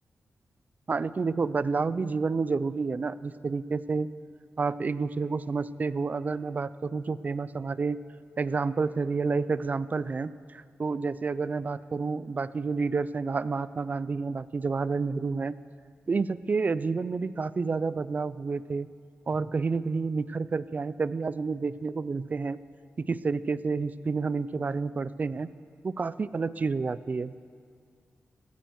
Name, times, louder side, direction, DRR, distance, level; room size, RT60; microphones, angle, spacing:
voice 1, 0.9-4.1 4.6-8.0 8.4-15.6 16.1-18.9 19.3-22.6 23.0-25.5 25.8-27.3, right 4 dB, 35° right, 16 dB, 0.4 m, -29 dB
15.5 x 14.5 x 4.6 m, 2.1 s
wide cardioid pair, 120°, 5 cm